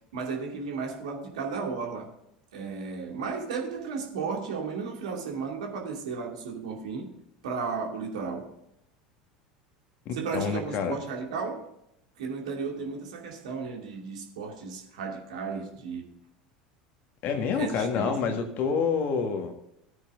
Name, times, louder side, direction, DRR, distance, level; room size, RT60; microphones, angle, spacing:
voice 1, 0.1-2.1 2.5-7.1 7.4-8.5 10.1-11.7 12.2-16.1 17.5-18.4, right 5 dB, 65° right, 2.6 m, -34 dB
voice 2, 10.1-11.0 17.2-19.5, left 6 dB, 45° left, 1.7 m, -28 dB
17.0 x 9.0 x 2.6 m
figure-of-eight pair, 75°, 4 cm